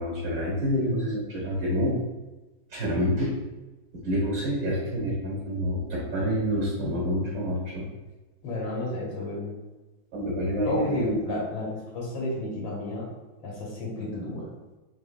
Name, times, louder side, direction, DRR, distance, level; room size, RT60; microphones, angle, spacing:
voice 1, 0.0-2.0 2.7-3.3 4.0-7.8 10.1-11.2, equal, 65° right, -4 dB, 1.7 m, -27 dB
voice 2, 8.4-9.5 10.7-13.1 13.4-14.5, left 1 dB, 70° left, -5 dB, 1.8 m, -31 dB
4.7 x 3.5 x 2.3 m, 1.1 s
omnidirectional pair, 2.2 m